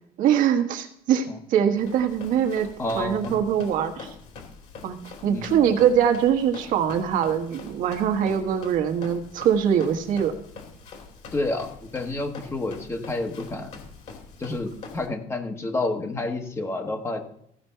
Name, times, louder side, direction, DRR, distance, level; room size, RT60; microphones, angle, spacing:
voice 1, 0.2-2.7 2.9-4.1 4.8-10.3, right 8 dB, 65° right, 5 dB, 1.4 m, -23 dB
Run, 1.8-15.1, left 4 dB, 50° left, 2.5 m, -44 dB
voice 2, 2.8-3.4 5.2-5.6 11.3-11.7 11.9-13.7 14.4-17.2, left 2 dB, 15° left, 5 dB, 1.2 m, -29 dB
15.5 x 5.2 x 5.6 m, 0.71 s
cardioid pair, 160°, 15 cm